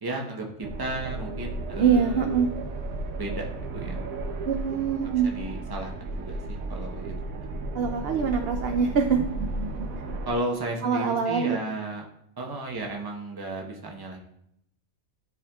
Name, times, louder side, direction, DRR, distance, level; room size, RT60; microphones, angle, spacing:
voice 1, 0.0-2.4 3.2-3.5 3.7-4.0 5.0-7.1 10.2-12.0 12.4-14.2, right 2 dB, 20° right, 0 dB, 0.7 m, -34 dB
sound 1, 0.6-10.3, right 2 dB, 80° right, 1.1 m, -34 dB
voice 2, 1.8-2.5 4.4-5.3 7.7-9.2 10.8-11.6, right 6 dB, 65° right, 5 dB, 0.6 m, -24 dB
11.0 x 4.4 x 2.3 m, 0.75 s
omnidirectional pair, 1.4 m